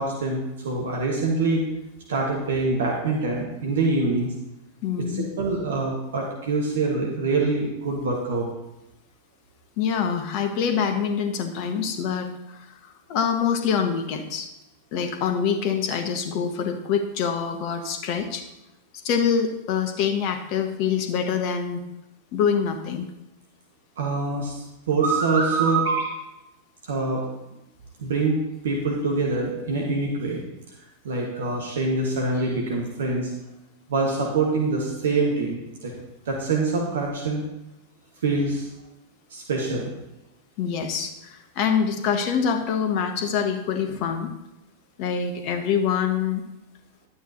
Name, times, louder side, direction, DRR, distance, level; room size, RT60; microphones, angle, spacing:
voice 1, 0.0-1.7 2.1-4.3 5.1-8.4 24.0-24.6 24.9-26.1 26.9-27.2 28.0-28.4 28.6-30.4 31.0-33.3 33.9-35.9 36.2-37.4 38.2-38.7 39.3-39.9, right 3 dB, 60° right, -1 dB, 1.6 m, -25 dB
voice 2, 4.8-5.3 9.8-12.7 13.1-14.5 14.9-18.4 19.0-21.8 22.3-23.1 40.6-44.3 45.0-46.4, left 7 dB, 45° left, 6 dB, 1.1 m, -25 dB
11.5 x 8.5 x 2.9 m, 0.93 s
figure-of-eight pair, 90°, 0 cm